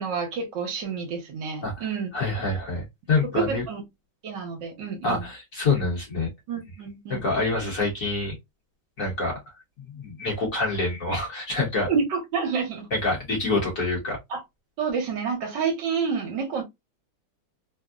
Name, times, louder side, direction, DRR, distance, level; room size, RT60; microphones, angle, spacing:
voice 1, 0.0-2.1 3.3-3.8 4.2-5.2 6.5-7.2 11.9-12.9 14.3-14.4 14.8-16.6, right 5 dB, 70° right, 1.4 m, -28 dB
voice 2, 1.6-3.6 5.0-6.3 7.1-8.3 9.0-9.4 9.9-11.9 12.9-14.2, left 3 dB, 50° left, 1.2 m, -26 dB
3.4 x 2.0 x 2.3 m
omnidirectional pair, 2.2 m